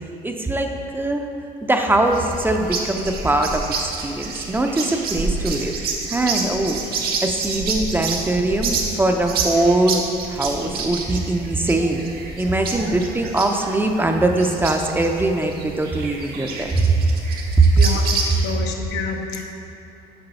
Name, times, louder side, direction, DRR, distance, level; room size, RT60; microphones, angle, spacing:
voice 1, 0.2-1.3 1.6-5.7 6.1-6.8 7.2-10.0 10.3-12.0 12.4-17.1 17.6-17.8, right 2 dB, 10° right, 3 dB, 0.5 m, -21 dB
sound 1, 2.1-18.5, right 4 dB, 65° right, 0.9 m, -29 dB
voice 2, 17.5-19.4, left 5 dB, 85° left, 2 dB, 0.8 m, -29 dB
6.9 x 3.9 x 5.4 m, 2.9 s
cardioid pair, 110°, 17 cm